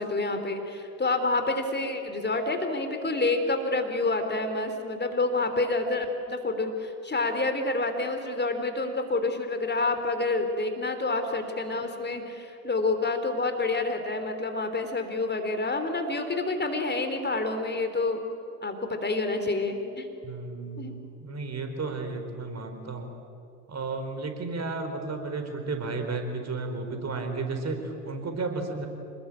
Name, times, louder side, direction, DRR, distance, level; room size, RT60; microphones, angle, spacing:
voice 1, 0.0-18.2 18.6-20.1 20.8-20.9, left 2 dB, 20° left, 6 dB, 3.5 m, -28 dB
voice 2, 20.2-23.1 23.7-28.9, right 3 dB, 35° right, 6 dB, 4.6 m, -33 dB
28.0 x 20.5 x 8.8 m, 2.7 s
hypercardioid pair, 65°, 46 cm